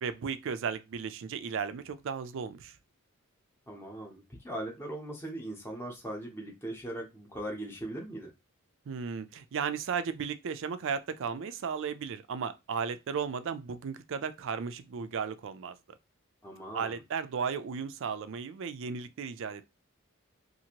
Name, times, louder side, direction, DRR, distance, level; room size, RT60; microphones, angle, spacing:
voice 1, 0.0-2.8 8.9-15.8 16.7-19.7, right 6 dB, 60° right, 0.4 m, -35 dB
voice 2, 3.7-8.3 16.4-16.9, right 1 dB, 10° left, 0.7 m, -39 dB
2.8 x 2.5 x 2.8 m
head